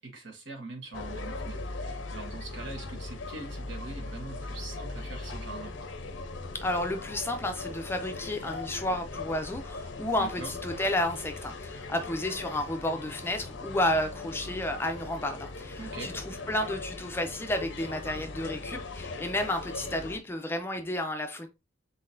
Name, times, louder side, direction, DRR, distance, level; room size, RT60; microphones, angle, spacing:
voice 1, 0.0-5.7 10.2-10.5 15.8-16.2, right 3 dB, 65° right, 1.3 m, -42 dB
sound 1, 0.9-20.2, left 3 dB, 70° left, 0.6 m, -39 dB
voice 2, 6.5-21.5, left 1 dB, 10° left, 0.5 m, -31 dB
4.1 x 3.9 x 2.6 m
head